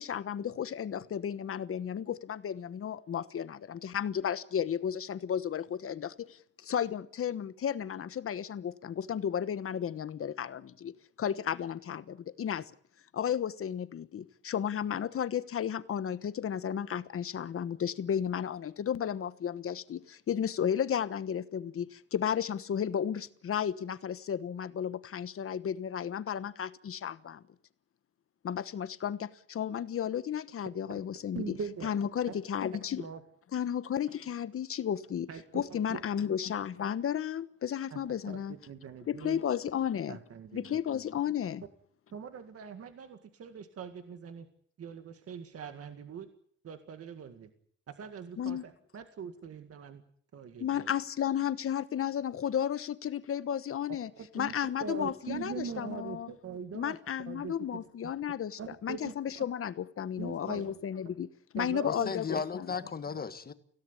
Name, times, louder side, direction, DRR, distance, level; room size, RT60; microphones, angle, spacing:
voice 1, 0.0-10.9 11.2-12.7 13.1-27.4 28.4-31.5 31.8-33.0 33.5-35.3 35.5-38.5 39.1-40.2 40.5-41.6 48.4-48.6 50.6-54.1 54.3-56.3 56.7-61.3 61.5-62.7, left 9 dB, 50° left, 1.2 m, -33 dB
voice 2, 31.3-31.9 32.3-32.4 33.0-33.2 35.3-35.6 35.9-36.0 37.9-39.4 40.1-40.8 42.1-44.5 44.8-46.3 46.6-47.5 47.9-50.0 50.3-50.9 54.1-54.5 54.8-57.0 57.3-58.1 58.6-59.4 60.2-60.7 61.6-62.4, right 6 dB, 55° right, 1.9 m, -42 dB
voice 3, 61.8-63.5, left 6 dB, 30° left, 1.6 m, -36 dB
25.0 x 17.0 x 9.8 m
wide cardioid pair, 170°, 30 cm